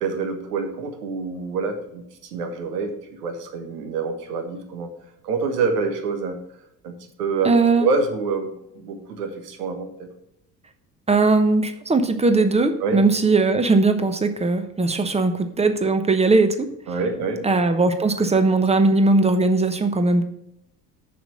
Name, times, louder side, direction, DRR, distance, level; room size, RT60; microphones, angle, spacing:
voice 1, 0.0-4.9 5.2-6.4 6.8-10.1 12.8-13.0 16.9-17.5, right 4 dB, 70° right, 6 dB, 1.5 m, -27 dB
voice 2, 7.4-7.8 11.1-16.7 17.4-20.2, right 3 dB, 15° right, 8 dB, 1.0 m, -19 dB
6.9 x 6.2 x 7.7 m, 0.78 s
figure-of-eight pair, 60°, 48 cm